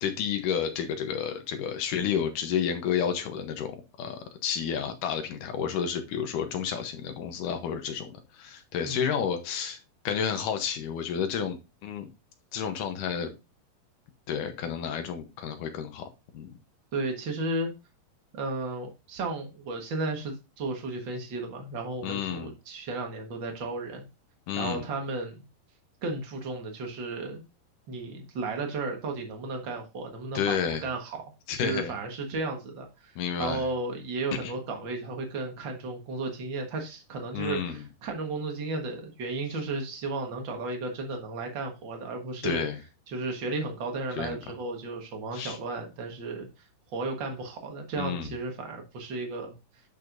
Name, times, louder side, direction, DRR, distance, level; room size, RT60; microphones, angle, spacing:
voice 1, 0.0-9.8 10.0-12.1 12.5-13.3 14.3-16.0 16.3-16.5 22.0-22.5 24.5-24.9 30.3-30.8 31.5-31.9 33.2-33.6 34.4-34.5 37.3-37.8 42.4-42.8 44.2-44.4 45.3-45.6 48.0-48.3, left 8 dB, 70° left, 7 dB, 2.1 m, -31 dB
voice 2, 8.8-9.2 16.9-17.7 18.3-24.1 24.6-25.4 26.0-27.4 27.9-31.2 31.6-42.6 43.1-46.5 46.9-49.5, right 3 dB, 80° right, 3 dB, 1.0 m, -34 dB
10.5 x 5.7 x 2.6 m, 0.26 s
omnidirectional pair, 4.7 m